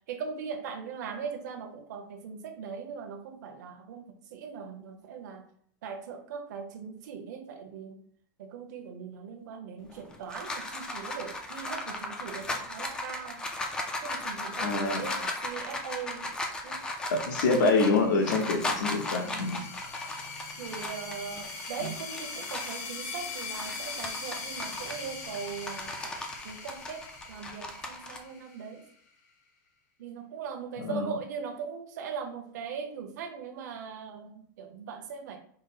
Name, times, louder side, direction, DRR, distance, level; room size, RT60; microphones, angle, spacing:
voice 1, 0.1-5.5 5.8-8.0 8.4-13.4 14.0-16.3 16.6-16.8 17.5-17.8 18.5-18.9 20.6-28.8 30.0-35.4, right 6 dB, 65° right, 4 dB, 0.9 m, -40 dB
sound 1, 9.9-22.8 23.3-28.2, left 2 dB, 10° left, 0.3 m, -36 dB
voice 2, 14.6-15.0 17.1-19.7 30.8-31.1, left 3 dB, 80° left, 3 dB, 1.0 m, -26 dB
sound 2, 17.7-28.9, left 4 dB, 55° left, 0.9 m, -41 dB
5.2 x 2.0 x 4.0 m, 0.63 s
supercardioid pair, 175°, 10 cm